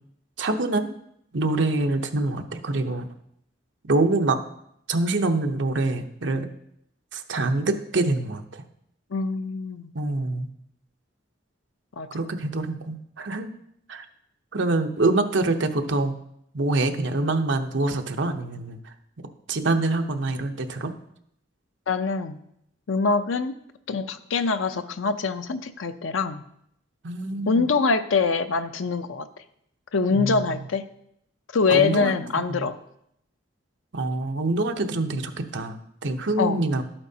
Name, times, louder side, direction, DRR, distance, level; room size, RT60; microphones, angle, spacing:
voice 1, 0.4-0.9 1.3-3.1 3.9-4.4 4.9-6.5 7.1-8.6 9.9-10.5 12.1-13.5 13.9-14.1 14.5-16.1 16.5-18.9 19.5-20.9 27.0-27.7 30.1-30.7 31.7-32.2 32.5-32.7 33.9-36.8, right 2 dB, 65° right, 6 dB, 0.8 m, -25 dB
voice 2, 9.1-9.9 12.0-12.1 21.9-22.4 22.9-23.5 23.9-26.4 27.5-29.3 29.9-30.8 31.5-32.7 36.4-36.6, left 4 dB, 80° left, 10 dB, 0.6 m, -24 dB
12.0 x 8.7 x 2.8 m, 0.74 s
head